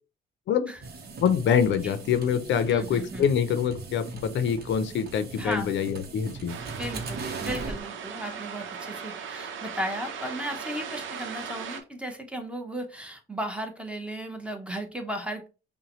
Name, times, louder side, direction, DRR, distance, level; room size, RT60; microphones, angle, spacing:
sound 1, 0.8-7.8, right 3 dB, 55° right, 0.9 m, -39 dB
voice 1, 1.2-6.6, left 8 dB, 70° left, 11 dB, 0.6 m, -25 dB
voice 2, 2.7-3.3 5.4-5.7 6.8-15.5, right 1 dB, 5° right, 4 dB, 0.9 m, -35 dB
sound 2, 6.5-11.8, right 6 dB, 80° right, 0.8 m, -38 dB
5.5 x 2.2 x 3.1 m, 0.32 s
cardioid pair, 90°, 20 cm